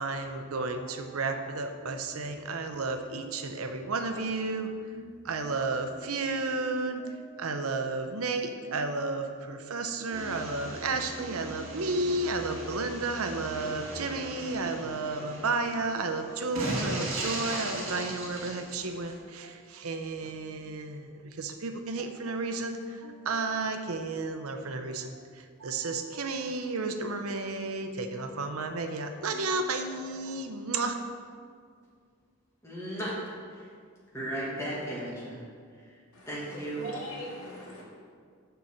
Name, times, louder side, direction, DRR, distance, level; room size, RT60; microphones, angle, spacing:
voice 1, 0.0-31.0, right 3 dB, 85° right, 6 dB, 0.7 m, -32 dB
sound 1, 10.1-19.2, right 2 dB, 65° right, 1.7 m, -38 dB
voice 2, 32.6-33.1 33.5-33.7 34.1-35.4 35.8-36.0 36.3-36.9, right 1 dB, 15° left, -7 dB, 2.1 m, -35 dB
voice 3, 36.1-37.8, equal, 85° left, -4 dB, 2.1 m, -41 dB
6.8 x 5.8 x 6.3 m, 2.1 s
head